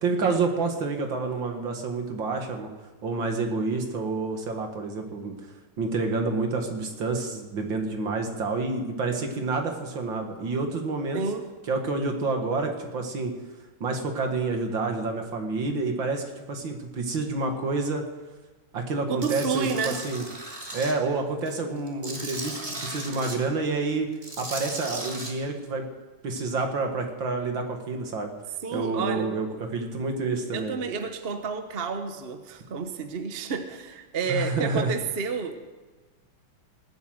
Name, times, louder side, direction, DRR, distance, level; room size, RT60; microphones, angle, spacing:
voice 1, 0.0-2.7 3.0-5.4 5.8-11.2 11.7-13.3 13.8-18.0 18.7-20.2 20.7-24.1 24.4-25.8 26.2-28.3 28.7-30.8 34.3-34.9, right 3 dB, 65° right, 4 dB, 2.5 m, -28 dB
voice 2, 11.1-11.5 19.1-20.0 28.6-29.3 30.5-35.6, right 5 dB, 40° right, 7 dB, 0.9 m, -30 dB
Tools, 19.2-20.9 21.4-23.4 24.1-25.3, right 1 dB, 20° right, 2.2 m, -37 dB
19.5 x 8.2 x 7.9 m, 1.2 s
omnidirectional pair, 2.3 m